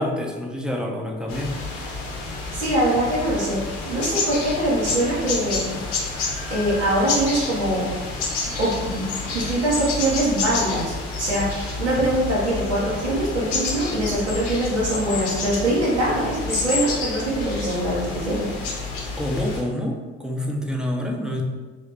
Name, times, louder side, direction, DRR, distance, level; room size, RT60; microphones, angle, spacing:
voice 1, 0.0-1.6 19.2-21.4, left 1 dB, ahead, 0 dB, 0.5 m, -27 dB
sound 1, 1.3-19.6, left 3 dB, 65° left, 0.7 m, -29 dB
voice 2, 2.5-3.6 3.8-5.8 6.5-7.9 8.6-18.5, right 1 dB, 85° right, -6 dB, 0.6 m, -23 dB
3.1 x 2.7 x 3.3 m, 1.3 s
figure-of-eight pair, 45°, 33 cm